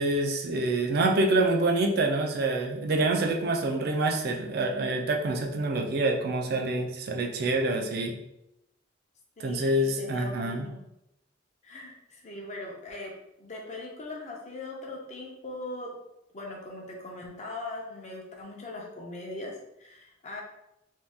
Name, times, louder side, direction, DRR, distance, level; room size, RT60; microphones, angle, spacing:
voice 1, 0.0-8.2 9.4-10.7, right 2 dB, 55° right, 3 dB, 0.4 m, -26 dB
voice 2, 9.4-10.8 11.6-16.0 16.3-20.4, left 2 dB, 35° left, -1 dB, 0.6 m, -40 dB
2.7 x 2.3 x 3.4 m, 0.84 s
head